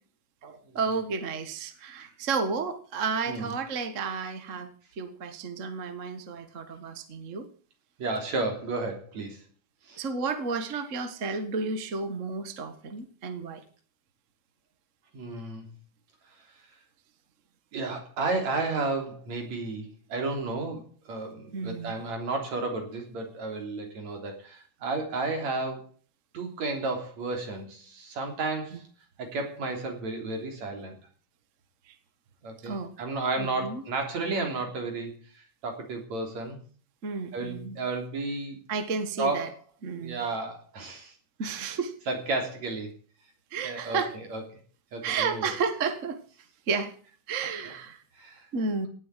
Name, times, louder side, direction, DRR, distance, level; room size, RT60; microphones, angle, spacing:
voice 1, 0.4-4.7 5.0-7.5 10.0-13.6 21.5-21.9 32.6-32.9 33.4-33.8 37.0-37.8 38.7-39.5 39.8-40.2 41.4-41.9 43.5-44.1 45.0-46.2 46.7-46.9 47.3-48.0 48.5-48.9, right 4 dB, 40° right, 9 dB, 1.1 m, -32 dB
voice 2, 8.0-9.4 9.8-10.0 15.1-15.7 17.7-25.9 26.3-28.8 29.2-31.0 32.4-36.6 37.3-38.6 39.2-39.5 40.0-41.1 41.4-41.8 42.1-42.9 43.6-44.4 44.9-45.5 48.2-48.5, right 3 dB, 60° right, 3 dB, 4.6 m, -32 dB
17.5 x 8.1 x 8.4 m, 0.44 s
omnidirectional pair, 3.7 m